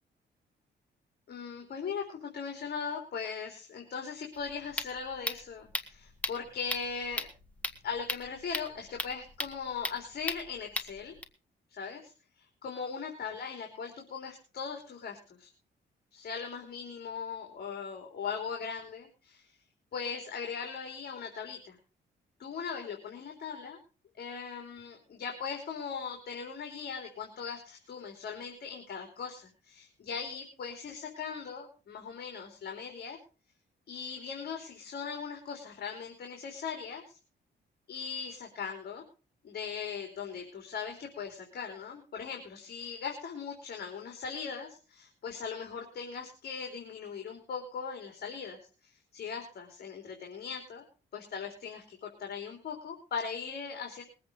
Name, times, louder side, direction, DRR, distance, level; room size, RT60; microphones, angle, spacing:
voice 1, 1.3-7.3 7.8-11.1 11.7-12.1 12.6-15.5 16.1-19.6 19.9-21.8 22.4-23.8 24.2-33.2 33.9-37.2 37.9-39.0 39.4-50.8 51.1-54.0, left 6 dB, 55° left, 3 dB, 3.5 m, -39 dB
sound 1, 4.3-11.2, left 1 dB, 5° left, 1.8 m, -38 dB
21.5 x 8.5 x 5.3 m, 0.36 s
cardioid pair, 145°, 19 cm